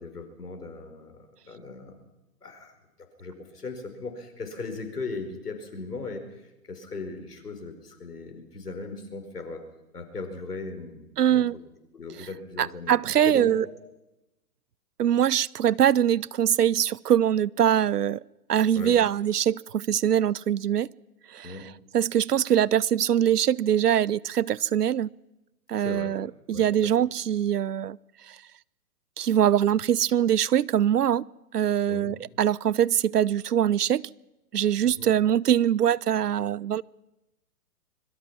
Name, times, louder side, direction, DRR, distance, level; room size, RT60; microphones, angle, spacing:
voice 1, 0.0-2.0 2.4-2.8 3.2-9.6 9.9-11.5 11.9-12.9 13.3-13.8 18.7-19.0 21.4-21.7 25.8-26.2 26.5-26.9 31.9-32.1 34.8-35.1, left 3 dB, 90° left, 6 dB, 5.1 m, -38 dB
voice 2, 11.2-11.5 12.6-13.6 15.0-18.2 18.5-20.9 21.3-21.5 21.9-25.1 25.7-28.0 28.3-28.4 29.2-31.2 31.5-34.0 34.5-36.8, right 10 dB, 85° right, 25 dB, 0.7 m, -23 dB
25.0 x 22.0 x 6.0 m, 0.97 s
hypercardioid pair, 125°, 45 cm